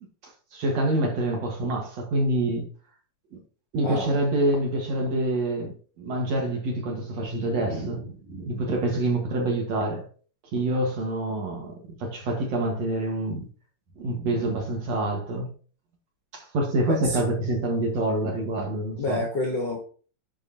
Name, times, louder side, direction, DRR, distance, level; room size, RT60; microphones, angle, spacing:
voice 1, 0.2-2.7 3.7-10.0 10.5-13.5 14.0-15.5 16.3-19.3, right 1 dB, 55° right, 2.3 m, -26 dB
voice 2, 3.8-4.2 16.8-17.2 19.0-19.8, left 1 dB, 90° left, 0.9 m, -28 dB
10.5 x 4.8 x 2.8 m
omnidirectional pair, 4.3 m